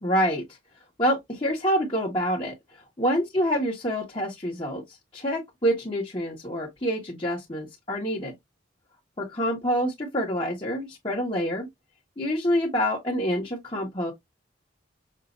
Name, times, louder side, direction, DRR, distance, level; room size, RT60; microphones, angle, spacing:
voice 1, 0.0-0.4 1.0-2.5 3.0-4.8 5.1-8.3 9.2-11.7 12.2-14.1, equal, 25° left, 1.4 m, -26 dB
6.5 x 2.8 x 2.6 m
head